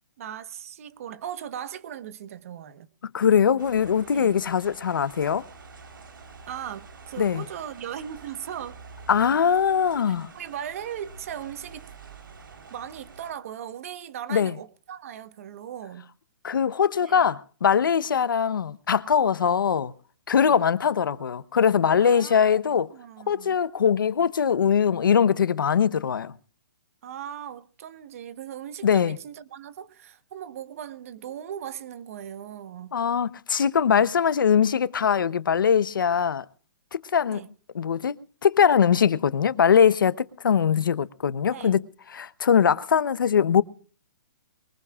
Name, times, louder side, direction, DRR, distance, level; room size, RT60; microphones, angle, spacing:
voice 1, 0.2-2.9 4.1-4.4 6.5-8.8 10.1-11.9 12.7-16.1 17.0-17.2 20.4-20.6 22.0-22.5 22.9-23.6 27.0-33.0 33.9-34.1 37.3-37.5 41.5-41.8, right 9 dB, 45° right, 1.2 m, -38 dB
voice 2, 3.1-5.5 7.2-7.4 9.1-10.3 14.3-14.5 16.4-19.9 20.3-22.9 23.3-26.3 28.8-29.2 32.9-36.5 37.1-37.4 37.7-38.1 38.4-41.8 42.1-43.6, left 7 dB, 85° left, 1.0 m, -21 dB
sound 1, 3.6-13.3, right 5 dB, 90° right, 3.9 m, -47 dB
23.0 x 19.5 x 2.4 m
hypercardioid pair, 165°, 11 cm